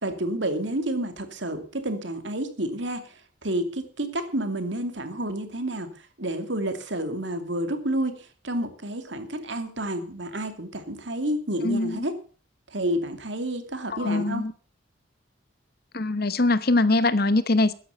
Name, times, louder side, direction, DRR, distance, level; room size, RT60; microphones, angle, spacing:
voice 1, 0.0-5.9 6.2-12.2 12.7-14.5, right 1 dB, 65° right, 2.5 m, -30 dB
voice 2, 11.6-12.0 13.9-14.5 15.9-17.7, left 2 dB, 50° left, 0.9 m, -22 dB
14.0 x 10.0 x 7.0 m
head